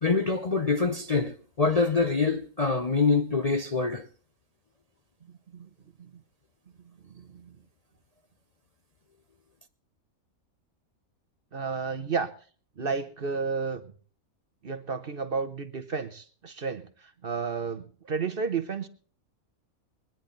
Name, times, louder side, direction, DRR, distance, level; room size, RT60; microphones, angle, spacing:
voice 1, 0.0-4.1, left 4 dB, 35° left, 0.7 m, -25 dB
voice 2, 5.2-5.7 6.0-6.2 6.8-7.6 11.5-12.3 12.8-13.9 14.6-18.9, right 5 dB, 45° right, 1.1 m, -32 dB
22.5 x 10.5 x 3.9 m
omnidirectional pair, 1.5 m